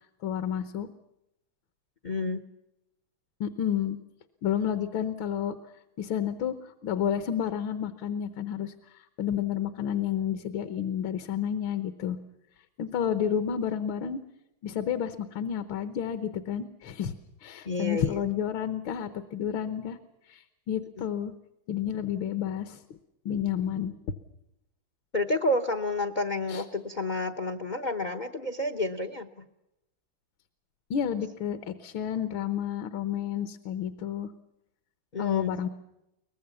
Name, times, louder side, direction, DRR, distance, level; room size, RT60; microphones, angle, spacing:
voice 1, 0.2-0.9 3.4-4.0 4.4-5.5 6.0-8.7 9.2-12.2 12.8-14.2 14.6-17.1 17.4-20.0 20.3-21.3 21.7-22.8 23.2-23.9 26.5-26.6 30.9-34.3 35.2-35.7, left 9 dB, 75° left, 11 dB, 1.8 m, -30 dB
voice 2, 2.0-2.4 13.0-13.1 17.6-18.2 21.0-21.1 25.1-29.4 35.1-35.6, left 2 dB, 50° left, 9 dB, 0.5 m, -30 dB
23.5 x 19.5 x 7.0 m, 0.87 s
omnidirectional pair, 2.2 m